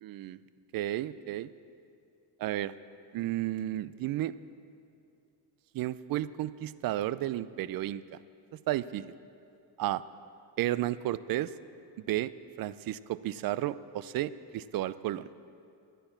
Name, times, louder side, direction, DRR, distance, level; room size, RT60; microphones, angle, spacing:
voice 1, 0.0-0.4 0.7-1.5 2.4-2.7 3.1-4.3 5.7-8.0 8.7-9.2 9.8-10.0 10.6-11.5 12.0-12.3 12.6-15.3, right 14 dB, 50° right, 17 dB, 0.5 m, -32 dB
11.5 x 10.0 x 7.1 m, 2.5 s
supercardioid pair, 85°, 44 cm